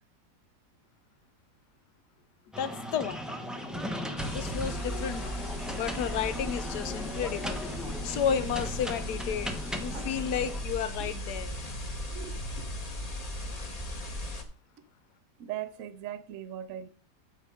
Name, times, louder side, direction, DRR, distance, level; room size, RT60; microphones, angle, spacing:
sound 1, 2.5-10.6, equal, ahead, 0.5 m, -37 dB
voice 1, 2.6-3.2 4.3-5.4 5.7-7.6 8.0-11.5, left 8 dB, 70° left, 1.4 m, -32 dB
sound 2, 4.2-14.4, left 1 dB, 25° left, 1.1 m, -37 dB
voice 2, 12.1-12.7 13.6-13.7 15.4-16.9, right 11 dB, 65° right, 0.8 m, -40 dB
8.0 x 6.6 x 5.0 m
omnidirectional pair, 1.9 m